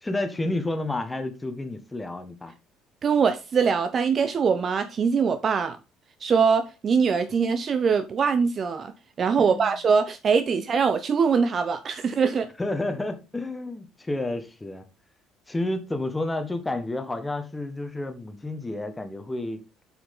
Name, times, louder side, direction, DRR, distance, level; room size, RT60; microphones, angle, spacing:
voice 1, 0.0-2.5 9.4-9.8 10.5-10.6 12.6-14.8 15.5-19.6, left 2 dB, 15° left, 1.3 m, -30 dB
voice 2, 3.0-5.8 6.2-8.9 9.2-12.5, right 6 dB, 40° right, 0.6 m, -22 dB
7.8 x 6.3 x 3.6 m
figure-of-eight pair, 55°, 0 cm